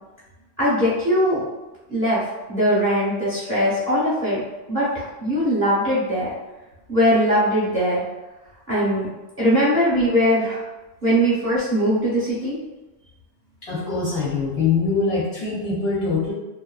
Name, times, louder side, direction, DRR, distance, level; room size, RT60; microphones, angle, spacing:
voice 1, 0.6-1.4 1.9-2.2 2.5-4.4 4.7-6.3 6.9-8.0 8.7-9.1 9.4-10.6 11.0-12.6, equal, 10° right, -10 dB, 0.9 m, -20 dB
voice 2, 13.6-16.3, left 4 dB, 60° left, -6 dB, 0.8 m, -23 dB
2.9 x 2.0 x 2.3 m, 1.1 s
omnidirectional pair, 1.3 m